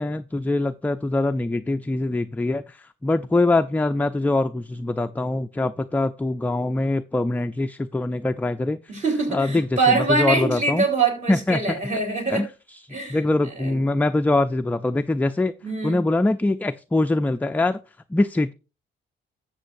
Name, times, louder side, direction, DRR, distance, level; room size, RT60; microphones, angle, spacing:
voice 1, 0.0-8.8 9.3-10.8 11.3-11.8 12.3-12.5 13.1-15.5 15.8-17.8 18.1-18.5, left 2 dB, 10° left, 0.3 m, -23 dB
voice 2, 8.9-12.5 12.9-13.8 15.6-16.0, right 3 dB, 35° right, 3.7 m, -24 dB
12.5 x 7.6 x 2.6 m
cardioid pair, 90°, 20 cm